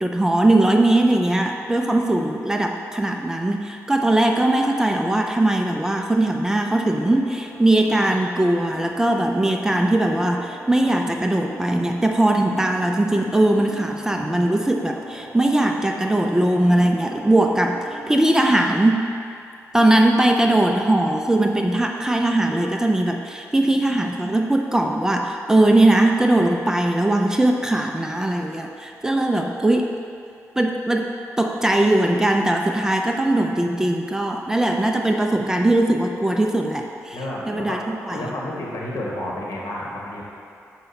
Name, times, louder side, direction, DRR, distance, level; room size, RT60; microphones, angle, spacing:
voice 1, 0.0-19.2 19.7-30.0 30.6-37.2 37.5-38.3, right 1 dB, 10° right, 2 dB, 0.5 m, -20 dB
sound 1, 6.7-18.2, right 1 dB, 25° right, 1.5 m, -41 dB
voice 2, 37.1-37.8 38.1-40.2, left 1 dB, 70° left, -4 dB, 1.8 m, -30 dB
6.9 x 5.2 x 5.7 m, 2.5 s
wide cardioid pair, 130°, 6 cm